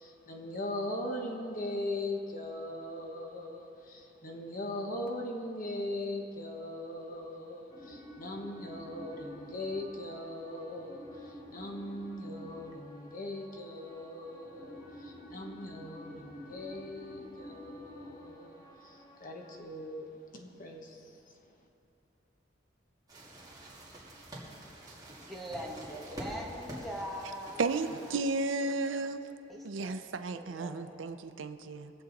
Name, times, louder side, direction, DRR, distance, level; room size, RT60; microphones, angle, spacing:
voice 1, 0.0-21.2, left 1 dB, 45° left, 1.3 m, -40 dB
sound 1, 7.7-19.6, equal, 25° left, 3.2 m, -50 dB
sound 2, 23.1-28.2, right 1 dB, 20° right, 2.4 m, -47 dB
voice 2, 25.2-28.3 29.5-30.0 30.3-31.0, equal, ahead, 1.7 m, -42 dB
voice 3, 27.6-29.2 29.6-31.9, right 3 dB, 90° right, 0.6 m, -33 dB
22.0 x 7.9 x 4.1 m
head